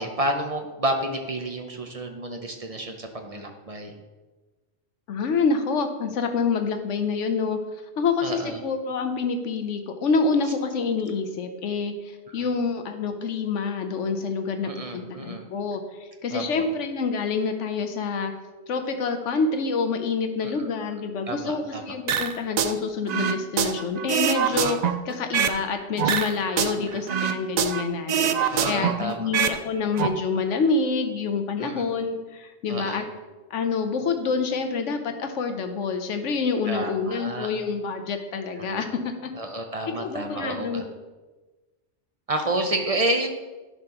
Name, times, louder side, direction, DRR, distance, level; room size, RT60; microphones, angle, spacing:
voice 1, 0.0-3.9 8.2-8.6 12.4-12.5 14.6-15.4 16.3-16.6 20.4-20.7 21.2-21.8 26.8-27.0 28.5-29.3 31.6-31.9 32.7-33.0 36.7-37.5 38.6-38.8 39.4-40.8 42.3-43.3, right 1 dB, 35° right, 4 dB, 0.7 m, -30 dB
voice 2, 5.1-7.6 8.0-15.8 16.2-18.3 18.7-24.8 25.1-33.0 33.5-39.3 39.9-40.9, left 4 dB, 75° left, 7 dB, 1.1 m, -27 dB
sound 1, 22.1-22.7 23.1-25.6 26.0-27.8 28.1-29.6 29.8-30.1, right 8 dB, 75° right, 0.3 m, -24 dB
11.0 x 5.9 x 3.0 m, 1.2 s
omnidirectional pair, 1.3 m